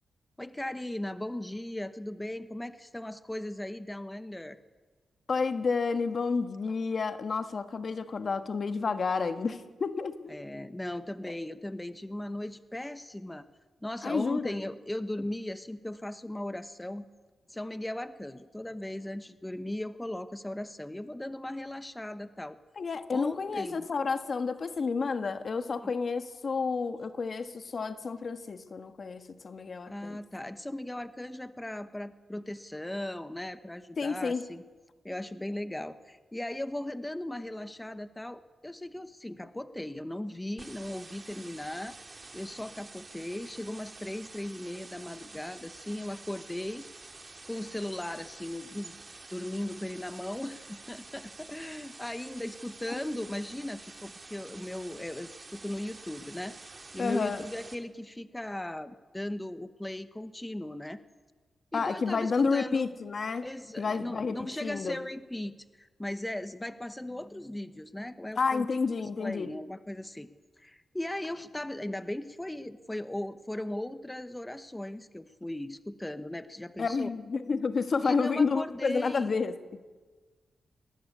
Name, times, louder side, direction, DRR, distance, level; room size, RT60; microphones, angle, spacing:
voice 1, 0.4-4.6 10.3-13.5 13.8-17.1 17.5-22.6 23.1-23.9 25.8-25.9 29.9-34.6 35.0-42.0 42.3-46.9 47.5-48.9 49.3-56.6 56.9-61.0 61.7-62.9 63.4-68.7 69.2-70.3 70.6-77.1 78.0-79.4, left 1 dB, 15° left, 1.1 m, -38 dB
voice 2, 5.3-10.4 11.2-11.3 14.0-14.6 22.8-30.2 34.0-34.4 57.0-57.4 61.7-63.5 63.8-65.0 68.4-69.5 76.8-79.8, left 4 dB, 55° left, 1.4 m, -30 dB
sound 1, 40.6-57.8, right 3 dB, 35° right, 2.6 m, -49 dB
21.5 x 18.5 x 8.4 m
cardioid pair, 60°, 0 cm